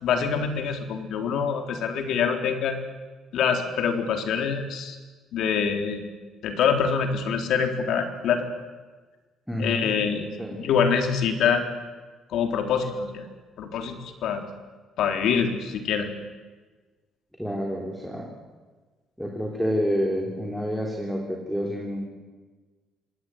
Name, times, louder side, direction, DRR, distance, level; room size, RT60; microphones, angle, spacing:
voice 1, 0.0-2.8 3.3-5.0 5.3-6.0 6.4-8.5 9.6-11.6 12.3-13.3 13.6-14.4 15.0-16.1, left 6 dB, 70° left, 5 dB, 3.8 m, -25 dB
voice 2, 9.5-9.9 10.4-10.6 17.4-18.3 19.2-22.0, equal, ahead, 0 dB, 3.6 m, -28 dB
26.0 x 20.0 x 9.5 m, 1.3 s
cardioid pair, 130°, 0 cm